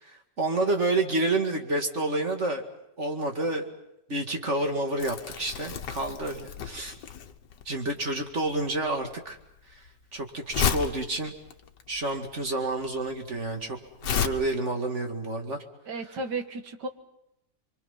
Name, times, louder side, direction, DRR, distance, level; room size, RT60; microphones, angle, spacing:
voice 1, 0.0-2.6 3.0-3.7 4.1-6.9 7.7-9.4 9.7-9.8 10.1-11.3 11.9-13.8 14.0-15.6, right 2 dB, 45° right, 3 dB, 2.4 m, -29 dB
Crumpling crinkling, 5.0-14.3, left 7 dB, 90° left, 1.8 m, -33 dB
voice 2, 15.9-16.9, right 3 dB, 80° right, 6 dB, 2.2 m, -33 dB
28.5 x 23.5 x 5.7 m, 0.82 s
omnidirectional pair, 1.8 m